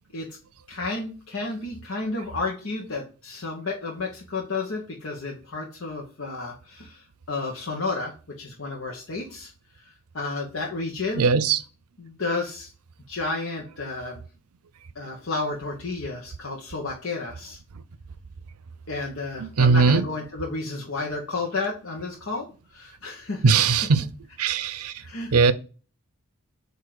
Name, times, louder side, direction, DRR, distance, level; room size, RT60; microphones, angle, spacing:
voice 1, 0.7-9.5 9.8-11.3 12.0-12.7 13.1-14.2 14.9-17.6 18.9-22.4 22.7-23.4 25.0-25.5, left 3 dB, 65° left, 1.0 m, -32 dB
voice 2, 11.1-11.6 19.4-20.0 23.4-24.1 24.4-24.9 25.3-25.5, right 5 dB, 85° right, 0.6 m, -19 dB
7.7 x 2.7 x 4.7 m
head